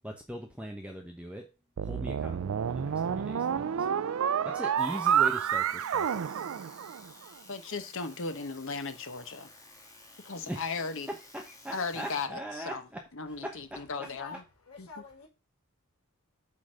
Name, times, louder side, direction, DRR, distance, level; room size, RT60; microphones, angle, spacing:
voice 1, 0.0-1.5 1.8-3.9 4.4-6.5 10.5-13.0 13.3-13.9, equal, 5° right, 0.9 m, -41 dB
sound 1, 1.8-7.2, right 8 dB, 65° right, 0.4 m, -29 dB
sound 2, 4.8-12.3, left 2 dB, 15° left, 2.1 m, -54 dB
voice 2, 7.5-9.5 10.2-11.1 11.7-12.8 13.1-14.4 14.8-14.9, left 4 dB, 60° left, 1.2 m, -36 dB
voice 3, 13.9-15.3, left 5 dB, 85° left, 4.7 m, -48 dB
8.7 x 4.0 x 6.4 m
head